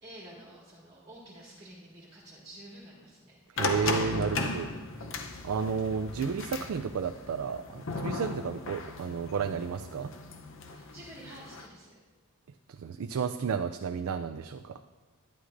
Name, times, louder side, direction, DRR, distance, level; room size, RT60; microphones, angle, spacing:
voice 1, 0.0-3.4 4.6-4.9 10.7-11.9, right 1 dB, 20° right, -6 dB, 1.8 m, -50 dB
voice 2, 3.5-4.7 5.4-10.1 12.8-14.8, right 6 dB, 80° right, 8 dB, 0.4 m, -32 dB
sound 1, 3.6-11.7, left 3 dB, 60° left, 0.8 m, -36 dB
11.0 x 11.0 x 2.6 m, 1.4 s
head